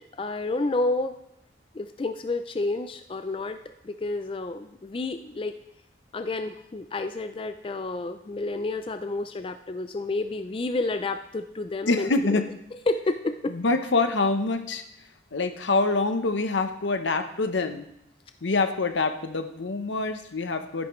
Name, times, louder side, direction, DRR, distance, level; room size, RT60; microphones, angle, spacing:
voice 1, 0.2-1.2 1.7-5.6 6.1-12.1 12.9-13.5, left 2 dB, 30° left, 9 dB, 0.3 m, -30 dB
voice 2, 11.9-12.5 13.5-14.8 15.3-17.9 18.4-20.9, left 3 dB, 80° left, 8 dB, 0.8 m, -25 dB
12.0 x 10.5 x 3.1 m, 0.77 s
head